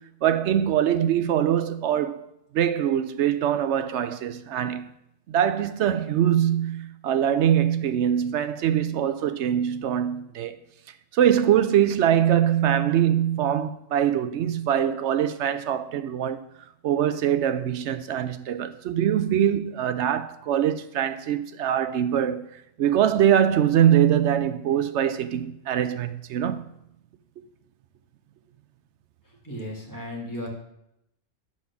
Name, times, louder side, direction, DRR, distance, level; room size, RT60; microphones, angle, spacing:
voice 1, 0.2-2.2 2.5-4.9 5.3-10.6 11.1-16.4 16.8-22.5 22.8-26.6, right 10 dB, 65° right, 0.7 m, -23 dB
voice 2, 29.4-30.5, left 1 dB, 15° left, 2.0 m, -35 dB
9.7 x 4.3 x 6.9 m
omnidirectional pair, 1.5 m